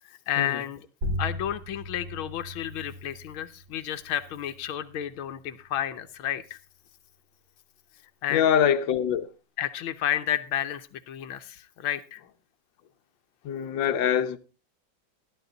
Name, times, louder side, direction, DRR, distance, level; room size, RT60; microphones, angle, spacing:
voice 1, 0.0-0.9 1.2-6.6 8.2-8.5 9.6-12.2, left 11 dB, 90° left, 1.7 m, -31 dB
sound 1, 1.0-6.1, left 1 dB, 50° right, 5.7 m, -38 dB
voice 2, 8.3-9.3 13.4-14.4, left 9 dB, 70° left, 1.5 m, -23 dB
14.5 x 11.0 x 3.9 m
omnidirectional pair, 2.2 m